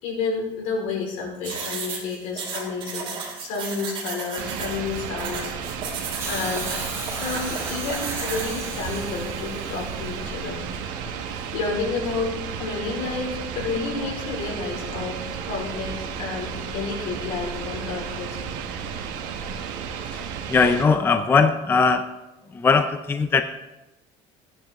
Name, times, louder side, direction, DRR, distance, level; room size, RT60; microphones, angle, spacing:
voice 1, 0.0-3.1 3.4-6.0 6.3-6.7 7.1-10.6 10.9-18.4, left 4 dB, 75° left, -1 dB, 4.5 m, -30 dB
sound 1, 1.4-8.5, right 5 dB, 40° right, 3.2 m, -34 dB
sound 2, 4.4-20.9, right 7 dB, 80° right, 1.4 m, -33 dB
Hiss, 6.2-10.3 11.4-11.5, right 2 dB, 20° right, 5.3 m, -36 dB
voice 2, 20.5-22.1 22.5-23.4, left 5 dB, 15° left, 8 dB, 0.5 m, -19 dB
16.0 x 9.8 x 3.7 m, 1.0 s
cardioid pair, 145°, 13 cm